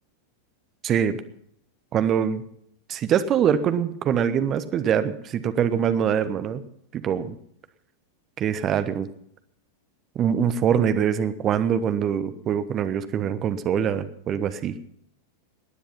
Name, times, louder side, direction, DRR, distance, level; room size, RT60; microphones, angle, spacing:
voice 1, 0.8-1.2 1.9-2.4 2.9-6.6 6.9-7.3 8.4-9.1 10.1-14.7, right 8 dB, 30° right, 11 dB, 1.1 m, -23 dB
18.0 x 10.0 x 5.7 m, 0.71 s
figure-of-eight pair, 90°, 0 cm